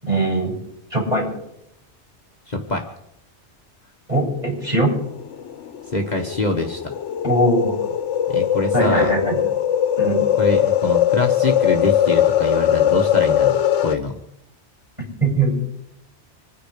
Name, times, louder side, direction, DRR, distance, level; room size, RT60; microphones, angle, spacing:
voice 1, 0.0-0.5 0.9-1.3 4.1-4.9 7.2-7.8 8.7-9.4 10.0-10.3 15.2-15.5, right 2 dB, 35° right, -3 dB, 7.7 m, -20 dB
voice 2, 2.5-2.8 5.9-6.9 8.3-9.1 10.4-14.2, left 2 dB, 40° left, 2 dB, 1.4 m, -24 dB
sound 1, 4.9-14.0, left 10 dB, 85° left, 1.1 m, -20 dB
25.5 x 10.0 x 5.1 m, 0.80 s
omnidirectional pair, 1.2 m